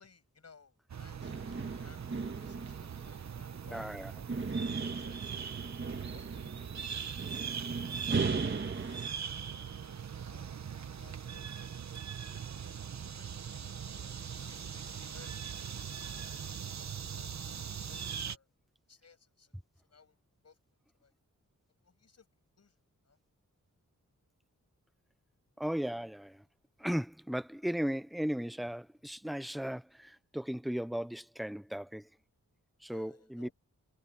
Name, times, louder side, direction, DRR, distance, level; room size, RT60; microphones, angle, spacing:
voice 1, 0.0-2.0 2.2-5.2 5.6-6.8 7.2-7.3 8.1-10.5 11.0-11.6 12.1-12.6 13.2-14.2 14.6-15.9 16.3-16.5 16.7-17.3 17.6-18.5 18.9-19.5 19.9-20.2 20.4-20.6 21.0-21.1 21.8-22.3 22.6-22.8 23.1-23.2 32.9-33.5, left 5 dB, 55° left, 7.0 m, -61 dB
sound 1, 0.9-18.4, right 7 dB, 60° right, 1.1 m, -41 dB
sound 2, 1.2-9.1, right 4 dB, 40° right, 1.7 m, -38 dB
voice 2, 3.7-4.1 25.6-26.4 26.8-32.1 32.8-33.5, equal, ahead, 0.6 m, -36 dB
wide cardioid pair, 140°, 31 cm